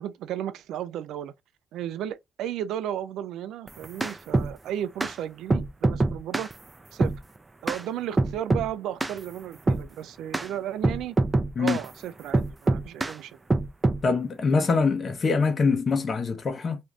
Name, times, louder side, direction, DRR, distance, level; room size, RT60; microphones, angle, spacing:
voice 1, 0.0-1.3 1.7-6.5 6.9-7.1 7.6-11.2 11.6-13.4, right 11 dB, 90° right, 0.3 m, -34 dB
sound 1, 3.7-4.5 5.0-5.1 5.5-6.5 7.0-7.2 7.7-7.8 8.2-8.7 9.0-9.2 9.7-9.9 10.3-10.5 10.8-11.9 12.3-13.2 13.5-14.0, right 2 dB, 20° right, 0.4 m, -24 dB
voice 2, 14.0-16.8, left 4 dB, 45° left, 0.8 m, -24 dB
2.5 x 2.4 x 3.2 m
cardioid pair, 85°, 0 cm